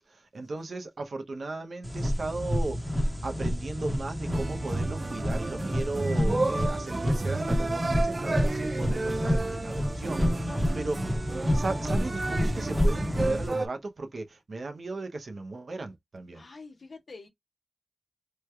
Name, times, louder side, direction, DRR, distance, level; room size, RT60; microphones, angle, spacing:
voice 1, 0.0-11.2 11.5-16.4, right 2 dB, 70° right, 0.7 m, -36 dB
sound 1, 1.8-13.5, equal, 10° right, 0.9 m, -29 dB
sound 2, 4.3-13.7, right 3 dB, 45° right, 0.4 m, -32 dB
voice 2, 10.5-10.9 16.3-17.3, left 3 dB, 70° left, 0.8 m, -46 dB
3.2 x 2.1 x 3.3 m
cardioid pair, 55°, 0 cm